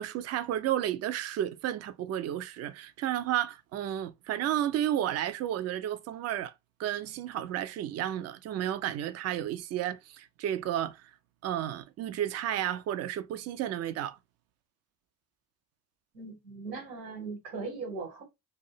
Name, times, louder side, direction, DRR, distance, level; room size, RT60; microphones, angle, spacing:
voice 1, 0.0-6.5 6.8-11.1 11.4-14.2, right 11 dB, 35° right, 0.4 m, -32 dB
voice 2, 16.1-18.2, right 4 dB, 90° right, 1.2 m, -39 dB
2.6 x 2.1 x 2.6 m
hypercardioid pair, 50°, 48 cm